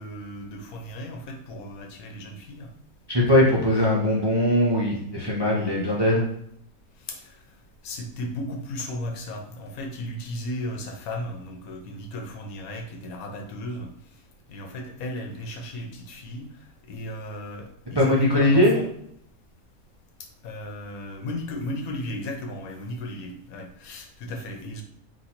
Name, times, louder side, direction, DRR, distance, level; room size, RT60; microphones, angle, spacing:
voice 1, 0.0-2.7 7.1-7.4 7.8-13.9 14.5-16.5 16.9-18.9 20.4-24.8, left 1 dB, 80° left, 3 dB, 1.2 m, -35 dB
voice 2, 3.1-6.3 17.9-18.7, left 1 dB, 30° right, -4 dB, 0.5 m, -20 dB
4.1 x 2.6 x 4.3 m, 0.71 s
omnidirectional pair, 1.5 m